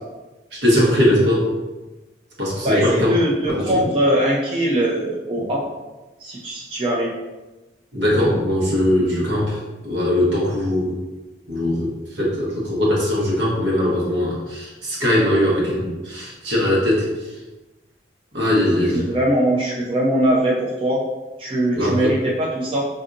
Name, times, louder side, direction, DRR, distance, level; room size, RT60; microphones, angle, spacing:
voice 1, 0.6-1.5 2.4-3.1 3.5-3.7 5.4-5.5 7.9-10.9 11.5-17.1 18.3-19.0 21.7-22.1, left 1 dB, 75° right, -4 dB, 1.1 m, -20 dB
voice 2, 2.6-5.6 6.2-7.1 18.9-21.0 21.4-22.9, right 1 dB, 30° right, -4 dB, 0.4 m, -21 dB
4.6 x 2.6 x 2.5 m, 1.1 s
head